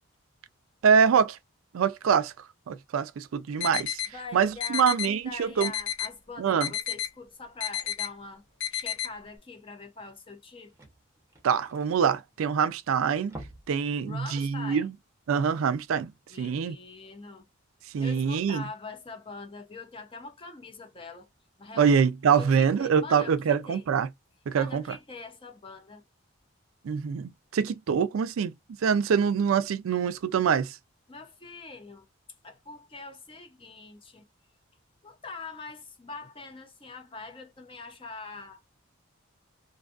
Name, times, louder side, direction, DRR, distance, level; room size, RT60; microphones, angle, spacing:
voice 1, 0.8-1.4 1.7-2.3 2.7-4.0 4.3-5.7 6.4-6.7 11.4-13.4 13.7-14.9 15.3-16.1 16.4-16.7 17.9-18.6 21.8-24.1 24.5-25.0 26.8-28.5 28.8-30.8, right 6 dB, 80° right, 0.4 m, -24 dB
sound 1, 3.6-4.1 4.6-5.1 5.6-6.1 6.6-7.1 7.6-8.1 8.6-9.1, left 10 dB, 65° left, 1.0 m, -31 dB
voice 2, 4.1-8.4 8.7-10.7 14.0-14.9 16.3-17.5 18.0-21.3 21.6-22.0 22.4-23.9 24.5-26.0 27.9-28.1 31.1-32.1 32.4-34.3 35.0-38.6, left 3 dB, 25° left, 0.6 m, -43 dB
sound 2, 10.4-12.7 13.1-13.9 14.2-14.3 14.8-14.9, right 1 dB, 15° right, 0.8 m, -47 dB
2.6 x 2.4 x 2.4 m
head